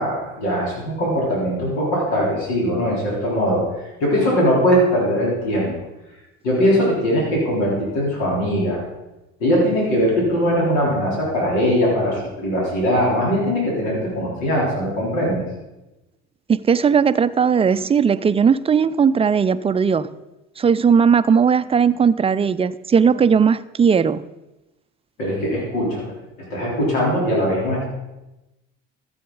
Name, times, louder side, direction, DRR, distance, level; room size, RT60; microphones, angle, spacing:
voice 1, 0.0-3.6 4.0-5.7 6.4-8.8 9.4-15.4 25.2-26.1 26.5-27.9, equal, 85° left, -4 dB, 3.7 m, -20 dB
voice 2, 16.5-20.1 20.6-24.2, right 6 dB, 20° right, 13 dB, 0.4 m, -17 dB
14.0 x 7.8 x 3.9 m, 1.0 s
supercardioid pair, 80°, 32 cm